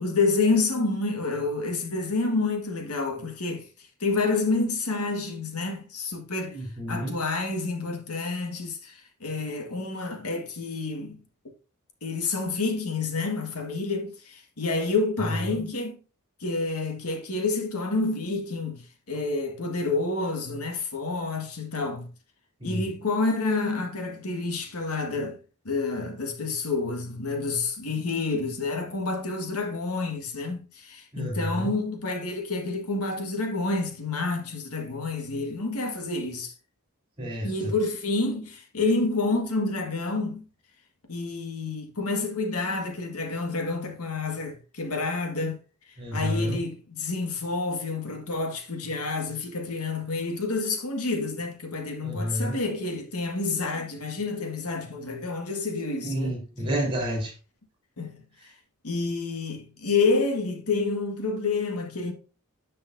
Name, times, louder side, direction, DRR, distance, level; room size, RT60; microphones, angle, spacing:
voice 1, 0.0-3.7 4.0-6.6 6.9-11.2 12.0-16.0 16.4-18.8 19.1-22.1 22.6-25.4 25.7-36.5 37.4-40.4 41.1-45.6 46.1-56.3 58.0-58.1 58.8-62.1, left 3 dB, 85° left, 1.8 m, -28 dB
voice 2, 6.5-7.2 15.2-15.6 22.6-22.8 31.1-31.7 37.2-37.7 46.0-46.6 52.0-52.6 56.0-57.3, equal, 25° right, 3.3 m, -30 dB
10.0 x 5.5 x 2.7 m
head